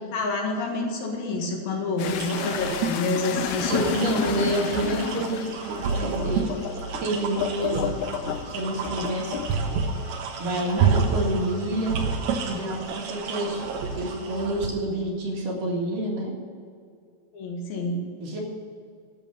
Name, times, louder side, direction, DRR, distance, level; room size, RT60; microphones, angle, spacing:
voice 1, 0.1-4.1 17.3-18.0, left 2 dB, 65° left, 0 dB, 3.4 m, -28 dB
sound 1, 2.0-12.9 13.3-14.4, left 11 dB, 85° left, 2.5 m, -33 dB
sound 2, 2.1-14.7, right 5 dB, 75° right, 3.0 m, -29 dB
voice 2, 3.7-6.5 7.0-8.0 8.5-9.4 10.4-12.0 12.5-13.6 14.0-16.3 18.2-18.4, right 1 dB, 60° right, -2 dB, 3.5 m, -28 dB
12.0 x 7.5 x 8.7 m, 2.2 s
omnidirectional pair, 4.6 m